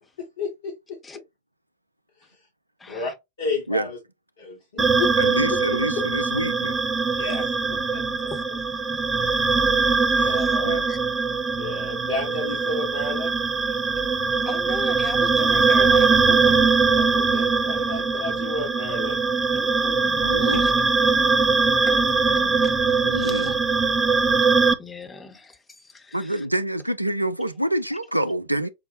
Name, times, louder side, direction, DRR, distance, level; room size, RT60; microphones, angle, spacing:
voice 1, 0.2-1.0 2.2-2.4 2.9-3.1 3.4-4.0 4.4-5.2 5.7-5.8 7.2-7.5 7.9-8.0 10.2-10.9 11.6-13.3 17.0-19.2 20.7-20.8, left 3 dB, 65° left, 1.3 m, -32 dB
voice 2, 2.8-3.1 8.3-8.4 8.7-9.4 10.9-11.0 14.5-16.7 19.6-20.7 21.9-22.8 23.1-23.5 24.8-26.4, left 4 dB, 15° left, 0.9 m, -40 dB
sound 1, 4.8-24.7, right 4 dB, 15° right, 0.6 m, -21 dB
voice 3, 5.2-6.8 10.1-10.4 10.6-10.8 20.2-20.6 23.0-23.5 26.1-28.7, right 1 dB, 85° right, 0.4 m, -27 dB
5.8 x 2.1 x 2.6 m
figure-of-eight pair, 90°, 0 cm